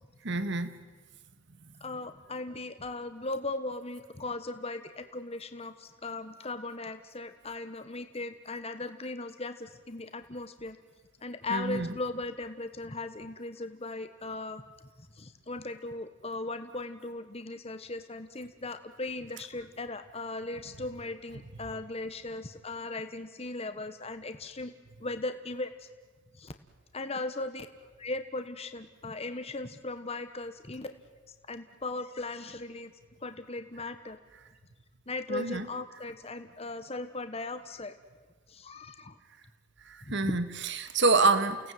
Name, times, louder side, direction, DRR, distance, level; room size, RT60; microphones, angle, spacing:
voice 1, 0.2-0.7 11.5-11.9 35.3-35.6 40.1-41.7, right 3 dB, 60° right, 12 dB, 1.7 m, -26 dB
voice 2, 1.8-10.8 11.2-14.6 15.0-24.7 25.0-25.9 26.3-26.5 26.9-27.7 28.0-30.9 31.5-32.9 33.2-34.2 35.1-37.9 38.5-39.2 40.0-40.4, left 2 dB, 30° left, 9 dB, 1.3 m, -38 dB
29.5 x 18.0 x 9.3 m, 1.3 s
head